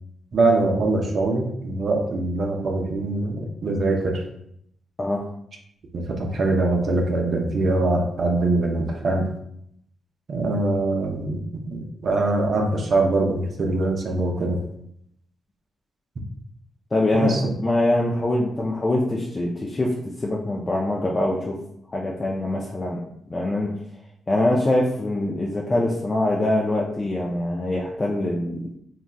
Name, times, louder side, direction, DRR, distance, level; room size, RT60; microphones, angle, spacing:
voice 1, 0.3-4.2 5.9-9.3 10.3-14.6 17.1-17.4, right 2 dB, 60° right, 1 dB, 0.5 m, -23 dB
voice 2, 16.9-21.6 21.9-23.0 23.3-23.7 24.3-28.6, left 1 dB, 30° left, -3 dB, 0.5 m, -23 dB
3.8 x 2.3 x 2.2 m, 0.72 s
supercardioid pair, 60°, 0 cm